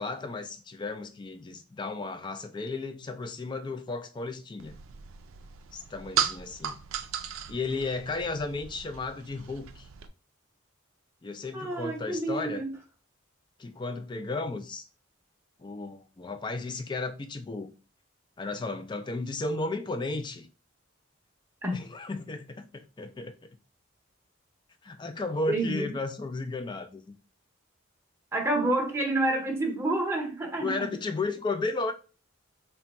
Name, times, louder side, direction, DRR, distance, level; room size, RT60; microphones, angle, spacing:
voice 1, 0.0-4.7 5.7-6.8 7.5-9.9 11.2-12.6 13.6-14.9 15.6-17.7 18.4-20.5 21.7-23.4 24.8-27.1 30.6-31.9, left 3 dB, 20° left, 0.3 m, -34 dB
sound 1, 4.6-10.1, right 8 dB, 85° right, 0.4 m, -36 dB
voice 2, 11.5-12.7 21.6-21.8 25.5-26.0 28.3-31.0, right 2 dB, 10° right, 0.7 m, -28 dB
3.4 x 2.2 x 4.0 m
head